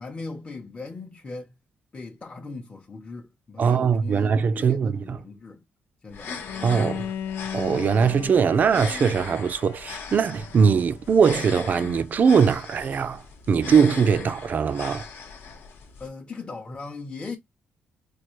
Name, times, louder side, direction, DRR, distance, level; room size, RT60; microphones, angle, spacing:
voice 1, 0.0-1.5 1.9-5.6 6.0-6.4 16.0-17.4, left 3 dB, 25° left, 0.7 m, -38 dB
voice 2, 3.6-5.2 6.6-7.1 7.5-13.2 13.5-15.1, right 6 dB, 45° right, 0.4 m, -21 dB
sound 1, 6.1-16.1, left 5 dB, 65° left, 0.9 m, -39 dB
Bowed string instrument, 6.4-11.4, left 9 dB, 90° left, 0.3 m, -37 dB
4.4 x 2.3 x 3.0 m
cardioid pair, 100°, 4 cm